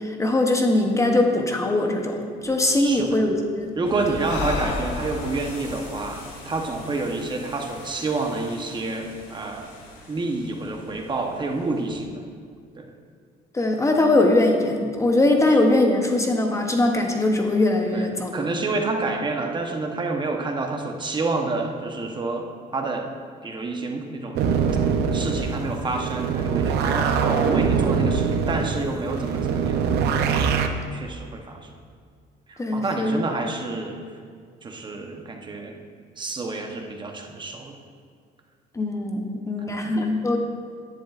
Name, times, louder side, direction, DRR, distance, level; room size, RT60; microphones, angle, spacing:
voice 1, 0.0-2.2 2.4-3.7 13.5-18.3 32.6-33.2 38.7-40.4, left 2 dB, 15° left, 3 dB, 0.8 m, -21 dB
sound 1, 2.4-12.1, left 2 dB, 55° left, 1.8 m, -44 dB
voice 2, 2.8-3.3 3.8-9.7 10.1-12.2 12.8-12.9 17.9-22.5 22.7-23.1 23.4-24.4 25.1-29.8 30.6-31.7 32.5-34.0 34.6-35.7 36.2-37.8 39.7-40.0, right 3 dB, 25° right, 2 dB, 0.9 m, -29 dB
Breathing, 4.1-7.6, left 5 dB, 85° left, 0.8 m, -33 dB
sound 2, 24.4-30.7, right 6 dB, 75° right, 0.6 m, -23 dB
10.5 x 10.0 x 2.4 m, 2.1 s
cardioid pair, 110°, 17 cm